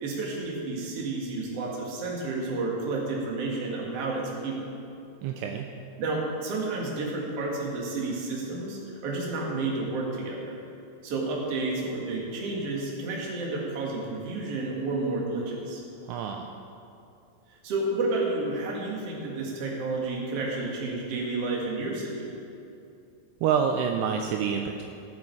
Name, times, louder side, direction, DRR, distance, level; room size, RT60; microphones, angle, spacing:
voice 1, 0.0-4.7 6.0-10.6 11.0-15.8 17.5-22.2, right 3 dB, 55° right, -2 dB, 1.8 m, -31 dB
voice 2, 5.2-5.7 16.0-16.5 23.4-24.8, right 7 dB, 90° right, 4 dB, 2.3 m, -27 dB
16.0 x 7.6 x 4.7 m, 2.6 s
omnidirectional pair, 5.4 m